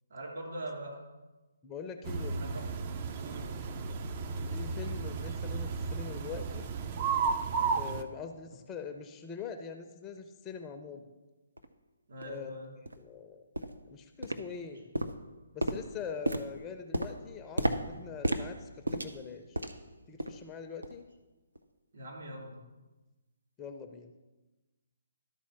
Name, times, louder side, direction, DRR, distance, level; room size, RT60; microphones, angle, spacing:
voice 1, 0.1-1.0 2.3-2.5 3.1-3.6 12.1-12.7 21.9-22.6, right 1 dB, 60° right, -2 dB, 3.0 m, -42 dB
voice 2, 1.6-2.4 4.5-6.7 7.7-11.1 12.2-12.6 13.0-13.4 13.9-14.9 15.5-19.6 20.1-21.0 23.6-24.1, left 6 dB, 15° left, 5 dB, 0.6 m, -43 dB
sound 1, 2.0-8.0, right 5 dB, 35° right, 0.5 m, -33 dB
sound 2, 11.6-11.7 12.2-12.3 12.9-13.0 13.6-13.9 14.2-14.7 15.0-19.9 20.2-20.5 20.8-21.0 21.6-21.7, right 1 dB, 80° right, 0.6 m, -34 dB
12.0 x 4.4 x 5.8 m, 1.1 s
figure-of-eight pair, 135°, 0 cm